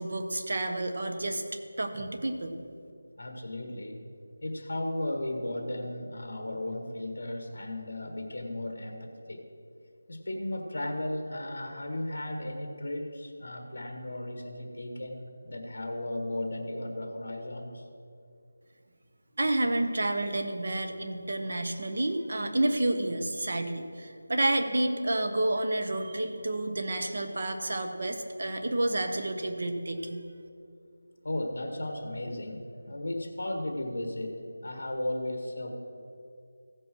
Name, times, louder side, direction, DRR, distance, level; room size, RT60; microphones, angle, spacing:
voice 1, 0.0-1.4 1.8-2.5 19.4-30.2, right 1 dB, 40° right, 5 dB, 0.9 m, -30 dB
voice 2, 3.2-4.0 4.4-9.4 10.1-17.8 31.2-35.7, left 1 dB, 50° left, 3 dB, 1.6 m, -35 dB
15.0 x 5.4 x 6.2 m, 2.5 s
figure-of-eight pair, 180°, 0 cm